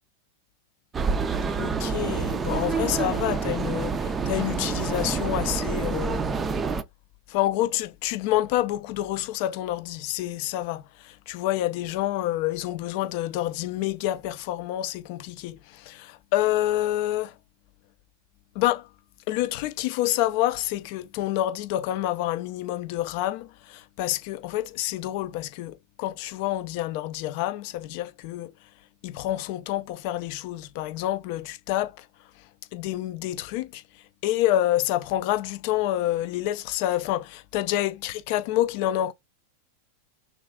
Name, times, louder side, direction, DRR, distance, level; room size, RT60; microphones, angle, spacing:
sound 1, 0.9-6.8, right 5 dB, 20° right, 0.4 m, -27 dB
voice 1, 1.6-6.3 7.3-17.4 18.5-18.9 19.3-28.5 29.0-32.1 32.7-33.8 34.2-39.1, left 14 dB, 45° left, 0.4 m, -28 dB
3.2 x 2.4 x 3.5 m
figure-of-eight pair, 90°, 0 cm